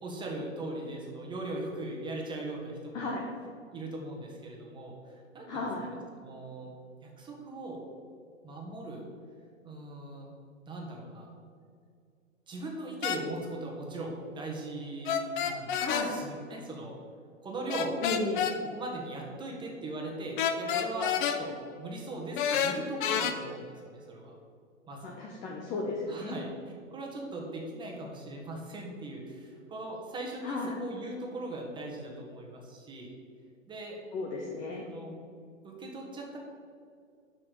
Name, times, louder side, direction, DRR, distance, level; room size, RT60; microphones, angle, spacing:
voice 1, 0.0-3.1 3.7-5.7 6.2-6.7 7.0-7.8 8.4-9.0 9.6-10.3 10.7-11.3 12.5-17.0 17.4-18.0 18.7-24.3 24.9-25.1 26.1-26.5 26.9-33.1 33.7-34.0 34.8-35.1 35.6-36.4, right 2 dB, 10° right, -1 dB, 1.4 m, -39 dB
voice 2, 2.9-3.3 5.5-5.9 15.8-16.1 18.0-18.5 25.0-26.4 30.4-30.8 34.1-34.9, left 3 dB, 10° left, -1 dB, 0.4 m, -34 dB
sound 1, 13.0-13.2 15.0-16.1 17.7-18.6 20.4-21.4 22.4-23.3, left 8 dB, 40° left, 0.7 m, -29 dB
6.0 x 5.9 x 6.7 m, 2.3 s
hypercardioid pair, 130°, 39 cm